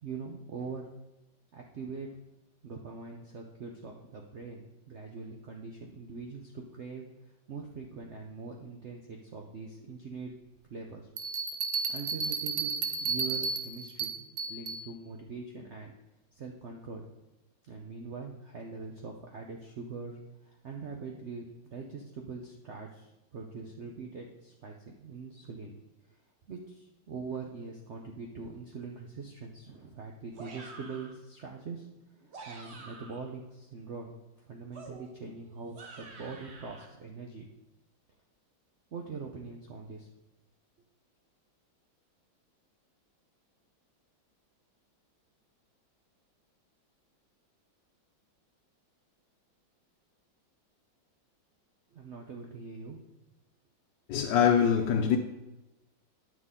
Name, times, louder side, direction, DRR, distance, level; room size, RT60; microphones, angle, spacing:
voice 1, 0.0-0.9 1.5-2.1 2.6-10.3 10.7-11.1 11.9-12.7 13.0-15.9 16.3-17.0 17.7-25.8 26.5-31.9 32.3-34.2 34.5-37.5 38.9-40.1 51.9-53.0, right 4 dB, 85° right, 0.6 m, -43 dB
sound 1, 11.2-14.8, right 5 dB, 65° right, 1.2 m, -33 dB
sound 2, 30.3-31.2 32.1-33.3 34.7-36.9, right 3 dB, 50° right, 0.8 m, -48 dB
voice 2, 54.1-55.2, left 8 dB, 70° left, 1.2 m, -24 dB
9.7 x 6.1 x 3.7 m
omnidirectional pair, 2.2 m